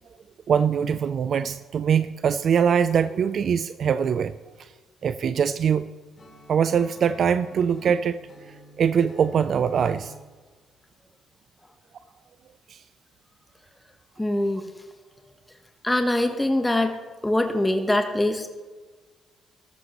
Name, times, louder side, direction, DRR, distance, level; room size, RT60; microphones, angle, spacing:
voice 1, 0.5-4.3 4.6-4.7 5.0-5.9 6.5-8.2 8.8-10.1 12.7-12.8, right 7 dB, 60° right, 13 dB, 0.4 m, -22 dB
Acoustic guitar / Strum, 6.2-10.3, equal, 40° left, 3.1 m, -49 dB
voice 2, 14.2-14.6 15.8-17.0 17.2-18.5, left 1 dB, 10° left, 6 dB, 1.1 m, -23 dB
14.0 x 12.5 x 3.0 m, 1.4 s
cardioid pair, 90°, 0 cm